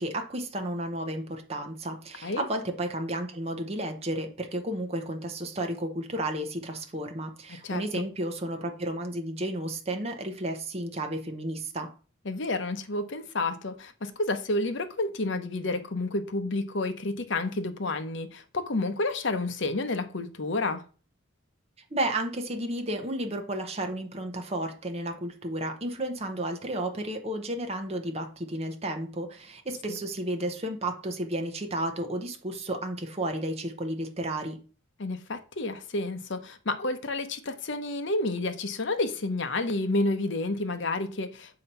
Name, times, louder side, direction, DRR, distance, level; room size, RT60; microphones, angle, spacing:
voice 1, 0.0-11.9 21.9-34.6, right 1 dB, 30° right, 0.9 m, -32 dB
voice 2, 7.5-8.0 12.3-20.8 29.9-30.0 35.0-41.6, left 2 dB, 60° left, 0.8 m, -30 dB
6.8 x 2.9 x 5.4 m
head